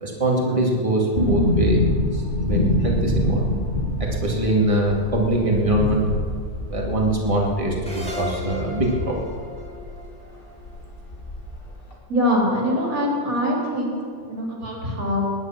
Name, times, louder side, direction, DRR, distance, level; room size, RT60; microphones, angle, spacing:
voice 1, 0.0-1.8 2.1-3.5 4.0-6.1 6.7-9.2, right 1 dB, 20° right, -2 dB, 2.4 m, -23 dB
sound 1, 1.2-10.0 10.2-10.3 10.6-11.6 11.9-12.0, left 1 dB, 35° left, 2.2 m, -25 dB
sound 2, 7.9-11.2, equal, 5° left, 2.6 m, -35 dB
voice 2, 12.1-14.0 14.3-15.2, equal, 65° right, -2 dB, 3.7 m, -23 dB
20.0 x 9.9 x 6.0 m, 2.2 s
omnidirectional pair, 1.6 m